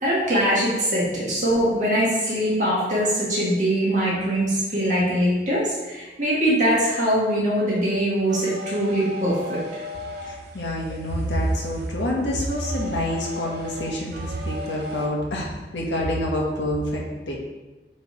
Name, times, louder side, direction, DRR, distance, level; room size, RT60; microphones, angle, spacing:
voice 1, 0.0-9.6, equal, 45° right, -7 dB, 1.9 m, -22 dB
sound 1, 8.3-15.1, left 1 dB, 60° right, 0.9 m, -37 dB
voice 2, 10.2-15.5 15.7-17.4, equal, 75° left, -2 dB, 1.4 m, -26 dB
7.7 x 3.5 x 4.4 m, 1.2 s
head